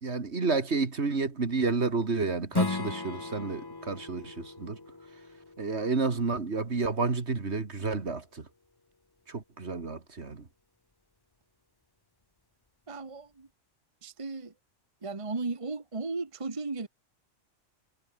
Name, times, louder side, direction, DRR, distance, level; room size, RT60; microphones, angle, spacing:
voice 1, 0.0-4.8 5.6-8.5 9.3-10.5, right 4 dB, 60° right, 2.5 m, -30 dB
Strum, 2.5-7.7, left 3 dB, 20° left, 1.0 m, -37 dB
voice 2, 12.9-13.5 14.0-14.5 15.0-16.9, right 3 dB, 25° right, 1.3 m, -35 dB
omnidirectional pair, 1.3 m